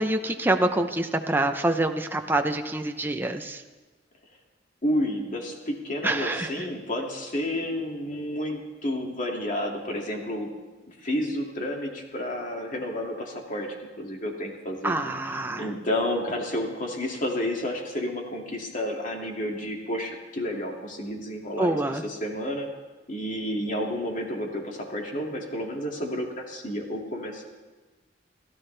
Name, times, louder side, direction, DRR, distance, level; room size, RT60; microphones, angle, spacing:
voice 1, 0.0-3.6 6.0-6.5 14.8-15.7 21.6-22.0, right 2 dB, 10° right, 5 dB, 0.7 m, -26 dB
voice 2, 4.8-10.5 10.9-14.9 15.6-22.7 23.1-27.5, left 1 dB, 45° left, 0 dB, 2.3 m, -31 dB
29.0 x 13.0 x 3.4 m, 1.2 s
head